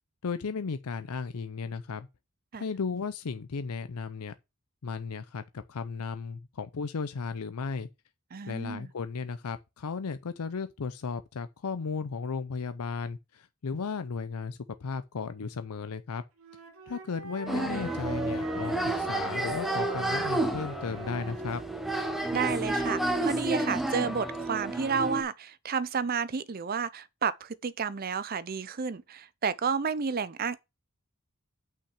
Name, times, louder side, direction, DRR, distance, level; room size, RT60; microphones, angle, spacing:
voice 1, 0.2-2.1 2.5-4.3 4.8-7.9 8.5-16.2 16.9-21.6, left 5 dB, 85° left, 0.6 m, -35 dB
voice 2, 8.3-8.9 22.3-30.6, right 6 dB, 40° right, 0.5 m, -31 dB
Wind instrument woodwind instrument, 16.4-21.6, right 3 dB, 70° right, 2.2 m, -41 dB
sound 1, 17.5-25.2, right 1 dB, ahead, 1.0 m, -31 dB
5.9 x 5.8 x 6.3 m
head